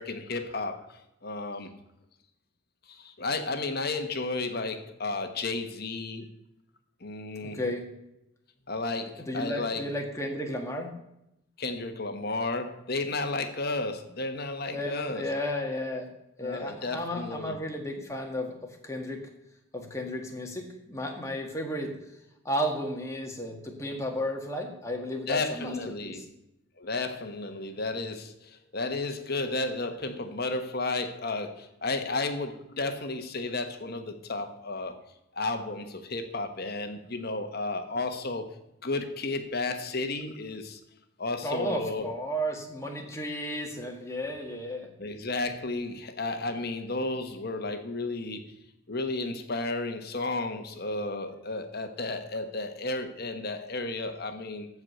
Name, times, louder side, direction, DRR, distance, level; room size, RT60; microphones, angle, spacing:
voice 1, 0.0-1.7 2.9-6.3 7.0-7.6 8.7-9.9 11.6-15.3 16.4-17.5 25.3-26.2 26.8-34.9 35.3-38.5 38.8-40.8 41.2-42.1 45.0-48.4 48.9-54.7, left 3 dB, 50° left, 7 dB, 1.3 m, -33 dB
voice 2, 7.4-7.9 9.2-10.9 14.7-16.1 16.4-19.2 19.7-22.0 22.5-26.2 41.4-44.9, equal, 15° left, 1 dB, 1.8 m, -33 dB
14.5 x 4.8 x 6.8 m, 0.84 s
head